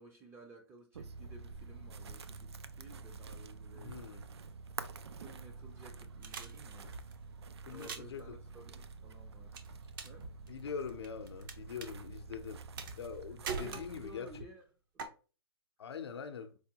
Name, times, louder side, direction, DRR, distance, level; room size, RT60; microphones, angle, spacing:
voice 1, 0.0-4.5 5.2-6.9 7.7-9.6 10.0-10.3 13.5-14.6 14.9-15.0, right 2 dB, 15° right, 0.4 m, -55 dB
sound 1, 0.9-14.2, right 4 dB, 90° right, 0.4 m, -48 dB
voice 2, 3.7-4.2 7.7-8.3 10.5-12.7 13.0-14.5 15.8-16.6, left 6 dB, 80° left, 0.6 m, -43 dB
sound 2, 3.8-4.4 5.4-5.8 6.5-7.7 9.2-10.5 10.8-11.6 12.4-14.4, right 2 dB, 75° right, 1.3 m, -55 dB
sound 3, 6.2-7.1 7.7-8.2 9.6-10.2 10.5-11.5 11.8-11.9 12.8-13.2 13.5-14.3 15.0-15.1, right 5 dB, 55° right, 0.7 m, -41 dB
4.7 x 2.2 x 2.8 m
hypercardioid pair, 140°, 13 cm